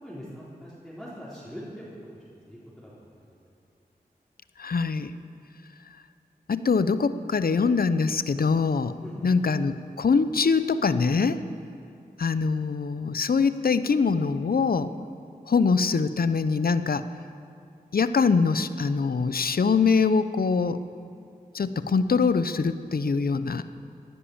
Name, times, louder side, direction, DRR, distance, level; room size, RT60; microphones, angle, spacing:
voice 1, 0.0-1.8 2.1-3.3 9.0-9.3, equal, ahead, -9 dB, 4.1 m, -42 dB
voice 2, 4.6-5.1 6.5-8.9 9.2-11.4 12.2-14.9 15.5-17.0 17.9-20.8 21.5-23.6, left 5 dB, 65° left, 12 dB, 0.7 m, -23 dB
17.5 x 10.5 x 7.1 m, 2.5 s
cardioid pair, 45°, 17 cm